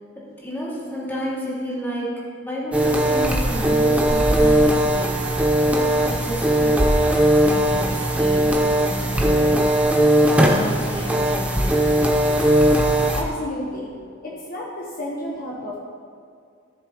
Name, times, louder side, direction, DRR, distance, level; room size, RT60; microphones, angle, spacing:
voice 1, 0.2-2.1 2.4-9.9 10.2-12.1, equal, 10° left, -7 dB, 2.5 m, -32 dB
sound 1, 2.7-13.2, right 1 dB, 5° right, 0.8 m, -19 dB
voice 2, 13.1-13.9 14.2-15.8, left 1 dB, 45° left, -4 dB, 1.2 m, -31 dB
15.0 x 7.0 x 3.1 m, 2.3 s
head